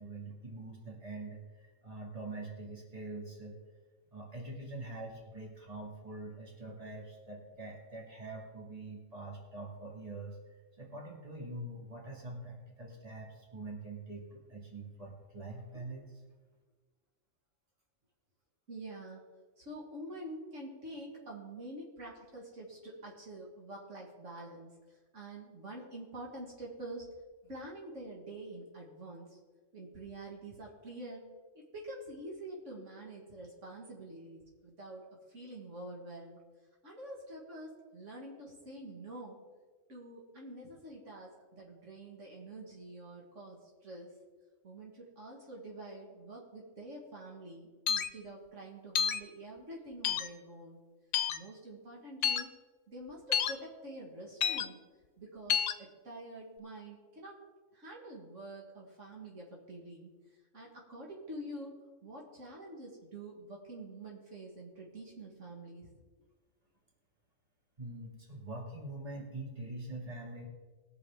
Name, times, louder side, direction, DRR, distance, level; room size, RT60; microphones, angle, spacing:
voice 1, 0.0-3.6 4.1-10.4 10.8-16.1 67.8-70.5, right 2 dB, 30° right, -1 dB, 2.4 m, -44 dB
voice 2, 18.7-19.2 19.6-27.1 27.4-29.4 29.7-31.3 31.5-36.4 36.8-39.4 39.9-44.1 44.6-50.8 51.3-52.5 52.9-54.8 55.2-57.4 57.7-60.1 60.5-65.9, right 1 dB, 70° right, -2 dB, 2.2 m, -47 dB
sound 1, 47.9-48.1 49.0-49.2 50.0-50.3 51.1-51.4 52.2-52.4 53.3-53.5 54.4-54.7 55.5-55.7, left 8 dB, 75° left, 1.0 m, -29 dB
20.5 x 6.9 x 3.6 m, 1.4 s
omnidirectional pair, 1.3 m